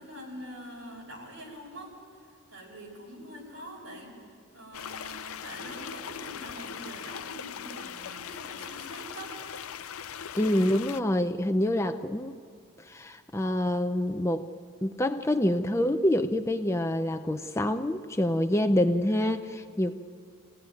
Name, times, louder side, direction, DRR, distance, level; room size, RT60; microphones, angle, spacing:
voice 1, 0.0-1.9 2.5-4.2 4.5-9.4, right 1 dB, 55° right, -1 dB, 7.1 m, -44 dB
sound 1, 4.7-11.0, left 8 dB, 80° left, 0.5 m, -40 dB
voice 2, 10.3-12.3 12.8-14.5 14.8-19.9, left 1 dB, 15° left, 8 dB, 0.5 m, -26 dB
26.0 x 17.0 x 9.6 m, 2.3 s
head